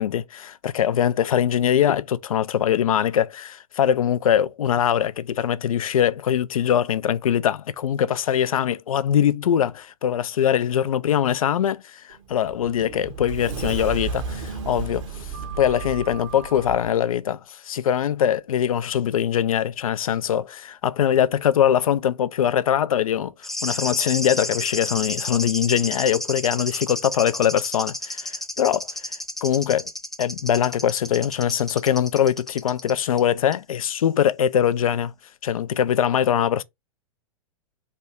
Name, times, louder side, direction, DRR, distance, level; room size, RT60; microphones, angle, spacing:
voice 1, 0.0-15.0 15.6-23.3 23.6-28.9 29.4-29.9 30.2-35.1 35.4-36.6, left 9 dB, 75° left, 0.4 m, -22 dB
Sliding door, 12.1-16.9, right 5 dB, 55° right, 1.2 m, -33 dB
sound 1, 23.4-33.2 33.5-33.6, left 1 dB, ahead, 0.4 m, -32 dB
3.3 x 2.6 x 4.3 m
figure-of-eight pair, 105°, 18 cm